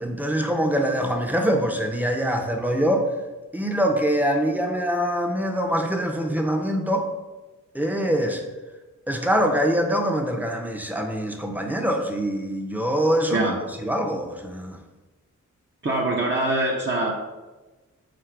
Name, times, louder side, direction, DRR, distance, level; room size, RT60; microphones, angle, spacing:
voice 1, 0.0-3.1 3.5-7.1 7.7-8.4 9.1-13.5 13.8-14.8, equal, 5° right, 3 dB, 0.7 m, -24 dB
voice 2, 15.8-17.1, right 2 dB, 35° right, -3 dB, 0.8 m, -23 dB
4.0 x 2.5 x 4.6 m, 1.2 s
cardioid pair, 45°, 33 cm